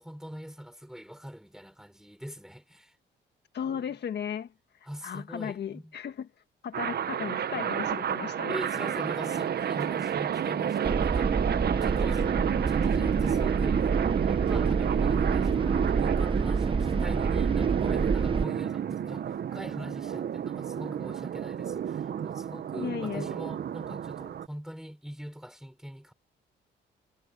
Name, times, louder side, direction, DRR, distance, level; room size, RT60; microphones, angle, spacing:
voice 1, 0.0-2.9 3.6-3.9 4.8-5.9 8.5-11.3 11.8-13.9 14.2-26.1, equal, ahead, 6.0 m, -42 dB
voice 2, 3.5-4.5 5.0-6.3 6.6-8.6 22.8-23.3, left 8 dB, 60° left, 1.6 m, -35 dB
sound 1, 6.7-24.5, right 9 dB, 55° right, 1.1 m, -30 dB
sound 2, 10.8-18.4, right 5 dB, 25° right, 0.8 m, -28 dB
cardioid pair, 90°, 20 cm